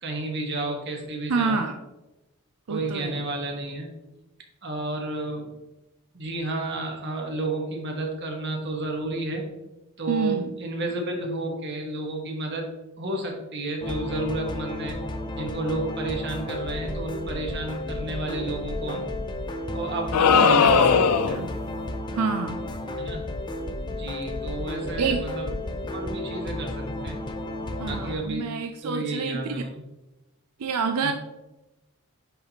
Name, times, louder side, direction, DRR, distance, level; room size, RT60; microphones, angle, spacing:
voice 1, 0.0-1.6 2.7-3.9 4.6-5.5 6.1-9.5 10.0-12.7 13.0-15.0 15.3-19.1 19.7-20.9 21.3-21.4 23.0-23.3 23.9-25.5 25.9-27.2 27.8-28.6 28.8-29.8 31.0-31.1, right 2 dB, 50° right, 1 dB, 1.3 m, -31 dB
voice 2, 1.3-1.8 2.7-3.2 10.1-10.5 20.3-21.5 22.1-22.6 25.0-25.2 27.8-29.6 30.6-31.1, right 5 dB, 85° right, 7 dB, 0.5 m, -28 dB
sound 1, 13.8-28.1, left 1 dB, 20° left, 0.5 m, -33 dB
sound 2, 20.1-21.5, left 5 dB, 80° left, 0.5 m, -18 dB
10.0 x 4.2 x 2.9 m, 1.0 s
head